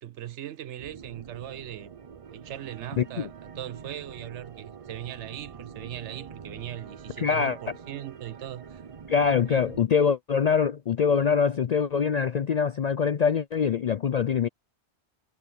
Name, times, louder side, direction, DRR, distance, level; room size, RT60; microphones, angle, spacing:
voice 1, 0.0-1.9 2.3-8.8 9.5-9.7, right 11 dB, 80° right, 1.0 m, -39 dB
sound 1, 0.8-9.9, right 6 dB, 40° right, 0.5 m, -45 dB
voice 2, 3.0-3.3 7.2-7.6 9.1-14.5, left 6 dB, 60° left, 0.4 m, -24 dB
omnidirectional pair, 1.2 m